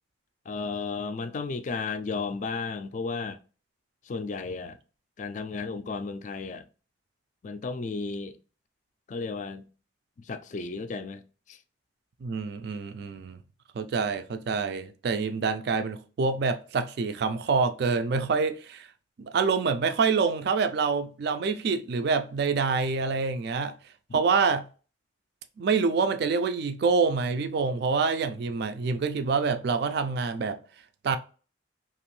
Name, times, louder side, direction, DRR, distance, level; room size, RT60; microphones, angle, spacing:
voice 1, 0.5-3.4 4.1-4.8 5.2-6.6 7.4-8.4 9.1-9.6 10.2-11.2 11.5-11.6, left 4 dB, 40° left, 0.3 m, -33 dB
voice 2, 12.2-13.4 13.8-18.9 19.2-23.7 24.1-24.6 25.6-30.6 31.0-31.2, right 5 dB, 55° right, 0.3 m, -26 dB
2.9 x 2.5 x 3.0 m
head